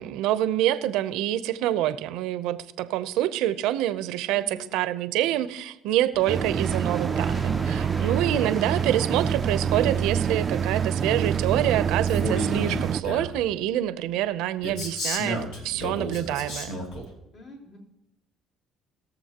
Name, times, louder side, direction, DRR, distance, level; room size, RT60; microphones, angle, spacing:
voice 1, 0.0-16.8, right 13 dB, 85° right, 14 dB, 0.6 m, -26 dB
voice 2, 4.3-4.8 17.3-17.8, left 2 dB, 60° left, -2 dB, 3.9 m, -46 dB
sound 1, 6.1-11.7, left 2 dB, 15° left, 0.7 m, -42 dB
sound 2, 6.3-13.0, right 7 dB, 40° right, 0.3 m, -26 dB
Male speech man speaking, 12.1-13.4 14.6-17.1, equal, 80° left, 2.6 m, -32 dB
21.0 x 7.1 x 2.9 m, 0.88 s
cardioid pair, 95°, 0 cm